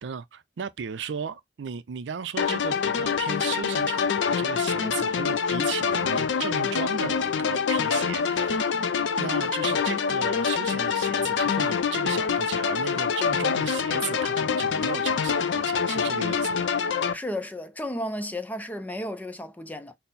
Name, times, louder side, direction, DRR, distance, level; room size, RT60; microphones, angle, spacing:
voice 1, 0.0-8.8 9.2-16.7, right 7 dB, 75° right, 0.4 m, -35 dB
sound 1, 2.4-17.1, left 6 dB, 85° left, 0.5 m, -25 dB
voice 2, 17.1-19.9, left 1 dB, 10° left, 0.4 m, -33 dB
4.2 x 2.0 x 3.9 m
head